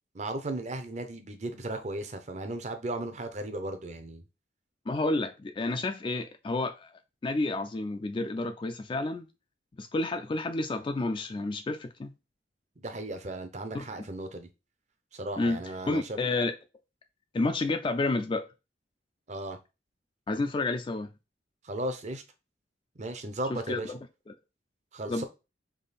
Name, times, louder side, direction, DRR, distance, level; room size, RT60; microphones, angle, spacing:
voice 1, 0.1-4.2 12.8-14.5 15.1-16.2 19.3-19.6 21.6-22.2 23.0-23.9 24.9-25.2, right 1 dB, 40° right, 0.7 m, -36 dB
voice 2, 4.9-6.9 7.2-9.3 9.8-12.1 13.7-13.9 15.4-15.6 15.9-16.5 17.3-18.5 20.3-21.1 23.5-24.0 24.3-24.4 25.1-25.2, left 2 dB, 25° left, 0.3 m, -30 dB
3.6 x 3.2 x 4.1 m
head